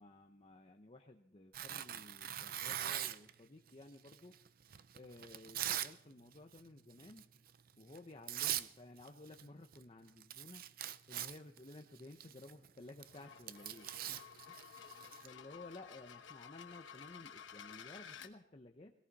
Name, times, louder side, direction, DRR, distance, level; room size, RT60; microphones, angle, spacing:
voice 1, 0.0-4.4 4.9-7.3 7.8-14.7 15.2-18.9, left 2 dB, 30° left, 4 dB, 0.8 m, -55 dB
Tearing, 1.5-3.3 4.1-5.9 6.3-6.6 7.0-7.2 7.9-8.0 8.3-8.7 9.0-9.5 9.7-9.8 10.1-15.3, right 11 dB, 50° right, 0.5 m, -41 dB
sound 1, 13.0-18.3, left 7 dB, 70° left, 1.1 m, -54 dB
19.0 x 17.5 x 4.1 m, 0.69 s
head